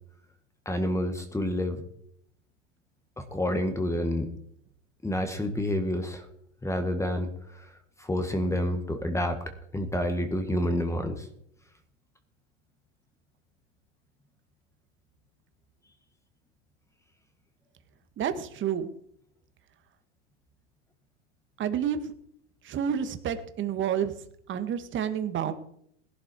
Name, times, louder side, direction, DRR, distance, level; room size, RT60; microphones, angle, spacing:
voice 1, 0.7-1.8 3.2-4.3 5.0-6.3 6.6-9.4 9.7-11.3, left 1 dB, 10° left, 6 dB, 1.8 m, -29 dB
voice 2, 18.2-18.9 21.6-22.1 22.6-24.1 24.5-25.5, right 8 dB, 35° right, 9 dB, 1.8 m, -29 dB
17.5 x 11.5 x 4.7 m, 0.69 s
hypercardioid pair, 110°, 36 cm